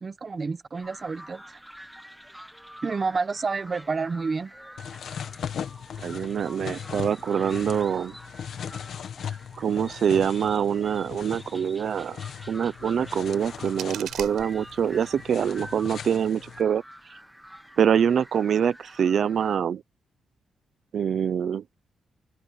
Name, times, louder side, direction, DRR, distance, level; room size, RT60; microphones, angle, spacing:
voice 1, 0.0-1.6 2.8-4.5, right 4 dB, 25° right, 0.9 m, -29 dB
sound 1, 0.7-19.6, equal, ahead, 1.3 m, -47 dB
sound 2, 4.8-16.6, left 8 dB, 55° left, 1.4 m, -39 dB
voice 2, 6.0-8.1 9.6-12.2 12.5-16.8 17.8-19.8 20.9-21.6, right 8 dB, 50° right, 0.5 m, -25 dB
sound 3, 13.2-15.2, right 10 dB, 85° right, 5.6 m, -41 dB
open air
wide cardioid pair, 180°, 0 cm